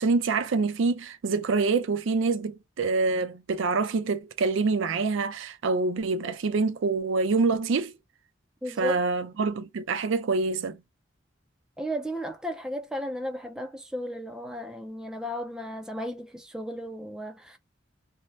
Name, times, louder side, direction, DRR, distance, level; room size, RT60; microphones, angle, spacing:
voice 1, 0.0-7.9 8.8-10.8, right 4 dB, 80° right, 0.4 m, -26 dB
voice 2, 8.6-8.9 11.8-17.6, equal, 5° right, 0.3 m, -34 dB
2.6 x 2.0 x 3.1 m
head